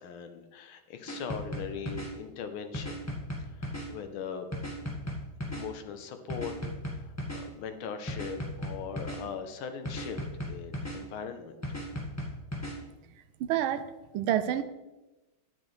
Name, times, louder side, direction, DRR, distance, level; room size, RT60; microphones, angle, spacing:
voice 1, 0.0-3.0 3.4-4.5 5.5-6.5 6.9-11.5, left 6 dB, 80° left, 7 dB, 1.7 m, -40 dB
sound 1, 1.1-2.1 2.7-3.9 4.5-5.6 6.3-7.4 8.1-9.2 9.9-11.0 11.6-12.7, left 1 dB, 10° left, 1.4 m, -35 dB
voice 2, 13.4-14.6, right 11 dB, 80° right, 11 dB, 1.4 m, -29 dB
9.6 x 8.2 x 3.3 m, 1.0 s
omnidirectional pair, 2.3 m